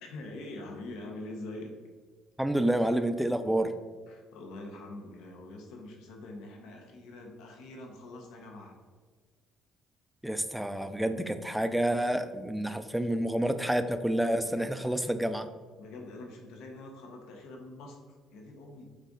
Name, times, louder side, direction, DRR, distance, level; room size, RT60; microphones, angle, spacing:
voice 1, 0.0-1.8 4.1-8.7 14.4-15.1 15.8-18.9, left 2 dB, 80° left, 2 dB, 1.0 m, -44 dB
voice 2, 2.4-3.7 10.2-15.5, right 1 dB, ahead, 8 dB, 0.3 m, -29 dB
6.5 x 4.1 x 3.7 m, 1.5 s
cardioid pair, 155°, 0 cm